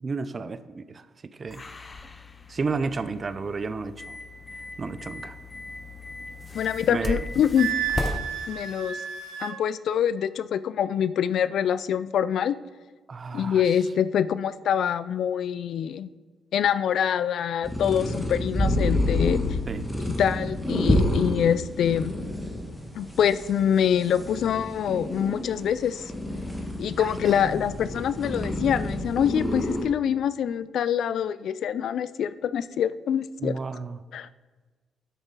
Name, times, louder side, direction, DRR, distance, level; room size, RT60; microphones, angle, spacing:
voice 1, 0.0-1.1 1.3-1.6 2.5-4.1 4.8-5.4 6.9-7.2 13.1-13.8 19.7-19.8 26.9-27.4 33.4-34.0, right 4 dB, 35° right, 13 dB, 0.4 m, -32 dB
sound 1, 1.5-8.2, left 2 dB, 25° left, 0.6 m, -36 dB
voice 2, 6.5-7.7 8.5-9.0 9.4-12.6 13.3-16.1 16.5-19.4 20.0-22.1 23.0-26.0 26.8-33.5 34.1-34.3, left 9 dB, 70° left, 15 dB, 0.3 m, -25 dB
Wind instrument woodwind instrument, 7.6-9.6, right 9 dB, 90° right, 0.7 m, -31 dB
sound 2, 17.6-29.8, left 1 dB, 5° left, 1.4 m, -29 dB
8.9 x 6.1 x 3.9 m, 1.3 s
cardioid pair, 90°, 0 cm